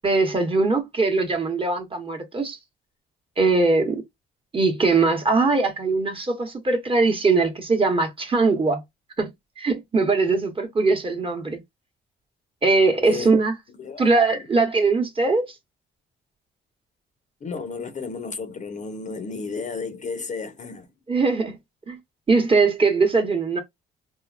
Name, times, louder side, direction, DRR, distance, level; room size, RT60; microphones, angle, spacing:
voice 1, 0.0-2.6 3.4-4.0 4.5-8.8 9.2-9.3 9.6-11.6 12.6-13.5 14.0-15.5 21.1-21.5 21.9-22.0 22.3-23.6, right 3 dB, 25° right, 1.0 m, -21 dB
voice 2, 13.8-14.5 17.4-20.9, left 4 dB, 40° left, 0.6 m, -33 dB
3.5 x 2.0 x 2.4 m
cardioid pair, 90°, 20 cm